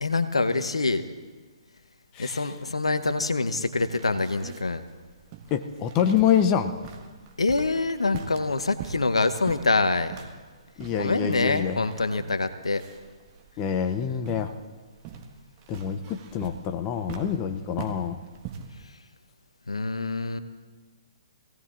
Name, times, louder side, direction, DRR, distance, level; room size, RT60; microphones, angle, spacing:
voice 1, 0.0-1.0 2.2-4.8 7.4-10.1 11.0-12.8 19.7-20.4, left 3 dB, 80° left, 10 dB, 1.0 m, -25 dB
sound 1, 3.7-18.8, right 7 dB, 30° right, 1.5 m, -43 dB
voice 2, 5.5-6.7 10.8-11.8 13.6-14.5 15.7-18.2, left 8 dB, 25° left, 7 dB, 0.8 m, -26 dB
26.0 x 17.5 x 2.5 m, 1.4 s
figure-of-eight pair, 130°, 3 cm